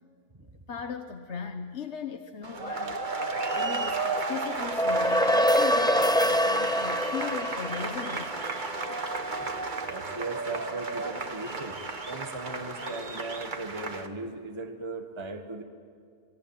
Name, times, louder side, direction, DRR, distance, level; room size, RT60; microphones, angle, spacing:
voice 1, 0.4-8.5, left 6 dB, 65° left, 7 dB, 1.3 m, -38 dB
sound 1, 2.4-14.1, right 3 dB, 40° right, 1.6 m, -33 dB
sound 2, 4.6-9.2, equal, 5° left, 0.3 m, -25 dB
voice 2, 9.9-11.7 12.0-15.6, right 2 dB, 20° right, 4 dB, 1.4 m, -38 dB
27.5 x 21.0 x 8.9 m, 2.4 s
omnidirectional pair, 1.3 m